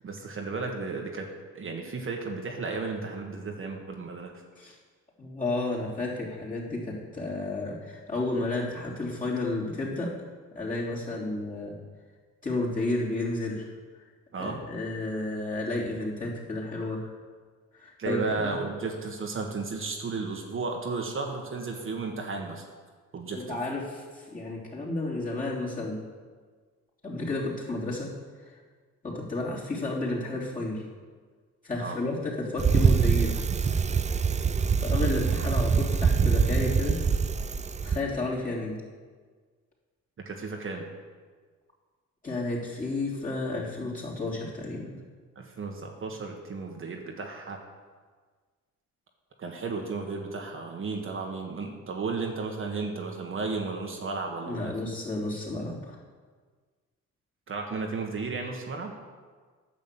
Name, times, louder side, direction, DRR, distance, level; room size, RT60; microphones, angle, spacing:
voice 1, 0.0-1.3 1.5-4.3 14.3-14.6 18.0-22.7 23.1-23.6 31.8-32.0 40.2-40.8 45.3-47.6 49.4-54.7 57.5-58.9, right 4 dB, 45° right, 1 dB, 1.5 m, -34 dB
voice 2, 5.2-10.1 10.5-11.7 12.4-13.7 14.4-17.1 17.8-18.5 23.3-26.0 27.0-28.1 29.0-30.8 31.6-33.4 34.8-37.0 37.8-38.8 42.2-45.0 54.5-56.0, left 2 dB, 25° left, -5 dB, 3.5 m, -32 dB
Bicycle, 32.6-38.0, right 6 dB, 25° right, 0.4 m, -24 dB
9.7 x 6.3 x 7.6 m, 1.5 s
cardioid pair, 90°, 30 cm